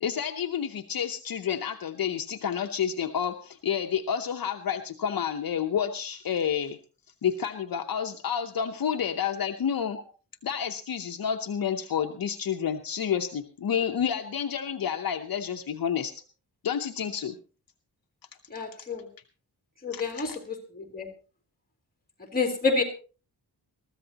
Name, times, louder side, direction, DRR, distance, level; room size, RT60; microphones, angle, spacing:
voice 1, 0.0-6.8 7.2-10.0 10.4-16.1 16.6-17.4 19.9-20.4, left 8 dB, 60° left, 5 dB, 0.9 m, -29 dB
voice 2, 18.5-19.0 19.8-20.3 20.8-21.1 22.3-22.8, left 4 dB, 25° left, 3 dB, 3.0 m, -28 dB
22.0 x 14.0 x 2.9 m, 0.35 s
wide cardioid pair, 175°, 39 cm